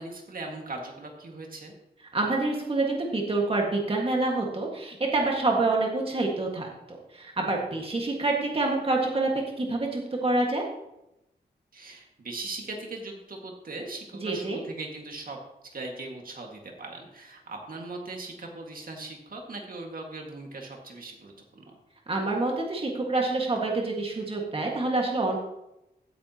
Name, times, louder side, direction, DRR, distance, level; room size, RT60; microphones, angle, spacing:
voice 1, 0.0-1.7 11.7-15.4 15.7-21.8, right 2 dB, 55° right, 1 dB, 2.0 m, -39 dB
voice 2, 2.1-9.3 9.6-10.6 14.2-14.6 22.1-25.4, right 2 dB, 35° right, -1 dB, 1.8 m, -27 dB
16.0 x 9.3 x 3.0 m, 0.88 s
wide cardioid pair, 135°, 17 cm